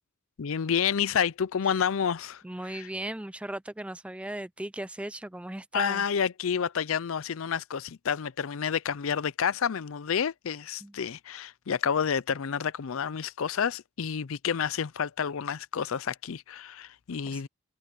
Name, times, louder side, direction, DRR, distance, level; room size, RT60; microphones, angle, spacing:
voice 1, 0.4-2.4 2.7-2.9 5.7-17.5, left 7 dB, 70° left, 0.5 m, -29 dB
voice 2, 2.4-6.0 10.8-11.0 17.3-17.4, right 1 dB, 5° right, 0.4 m, -37 dB
head